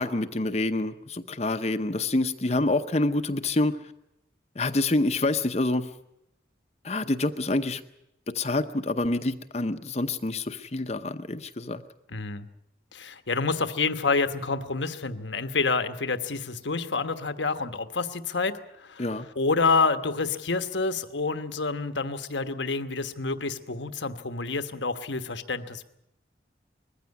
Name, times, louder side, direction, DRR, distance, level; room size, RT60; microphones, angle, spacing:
voice 1, 0.0-3.8 4.6-5.9 6.8-7.8 8.3-11.8 19.0-19.3, left 2 dB, 35° left, 8 dB, 0.8 m, -27 dB
voice 2, 12.1-12.5 12.9-19.1 19.4-25.8, left 4 dB, 80° left, 10 dB, 1.2 m, -28 dB
21.0 x 15.0 x 9.6 m, 0.83 s
head